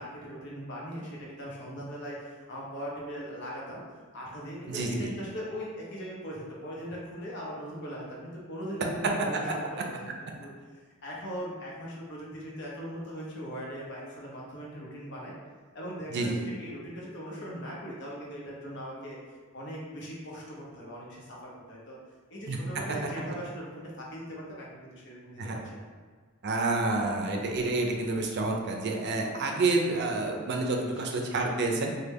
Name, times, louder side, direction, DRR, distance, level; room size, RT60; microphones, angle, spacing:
voice 1, 0.0-3.8 4.1-15.3 15.7-19.2 19.5-22.0 22.3-25.8 30.6-30.9, equal, 60° left, -4 dB, 0.8 m, -40 dB
voice 2, 4.7-5.1 16.1-16.4 22.5-22.6 25.4-25.6 26.4-32.0, right 2 dB, 55° right, 1 dB, 0.4 m, -29 dB
3.2 x 2.2 x 3.4 m, 1.5 s
head